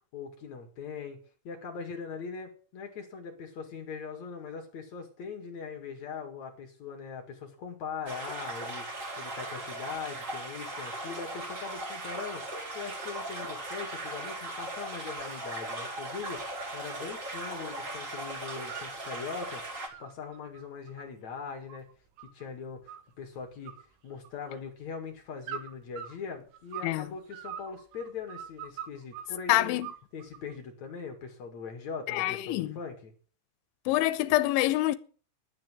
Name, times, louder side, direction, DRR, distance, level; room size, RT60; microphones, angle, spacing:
voice 1, 0.1-1.2 1.4-8.9 9.2-19.6 20.0-21.9 22.2-23.8 24.0-29.8 30.1-33.1, left 5 dB, 50° left, 2.4 m, -41 dB
sound 1, 8.0-19.9, right 2 dB, 65° right, 0.7 m, -38 dB
sound 2, 16.3-16.8 17.1-18.0 18.3-19.2 19.7-22.4 22.9-23.3 23.6-24.6 25.4-27.0 27.3-29.3 29.8-30.5, right 9 dB, 90° right, 4.3 m, -44 dB
voice 2, 29.5-29.9 32.1-32.8 33.9-35.0, left 16 dB, 80° left, 3.1 m, -26 dB
10.5 x 10.5 x 7.4 m
omnidirectional pair, 5.8 m